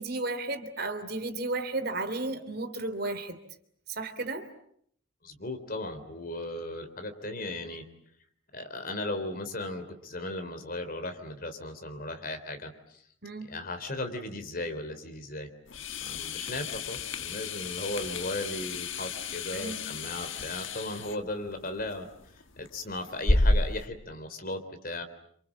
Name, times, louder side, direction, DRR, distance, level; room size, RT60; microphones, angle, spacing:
voice 1, 0.0-3.4 3.9-4.5 13.2-13.5 19.5-19.8, right 2 dB, 50° right, 3.0 m, -33 dB
voice 2, 5.2-7.8 8.5-13.0 13.4-15.5 16.0-25.0, left 2 dB, 45° left, 3.7 m, -36 dB
sound 1, 15.7-23.9, left 2 dB, 75° left, 1.7 m, -32 dB
29.5 x 27.0 x 7.5 m
head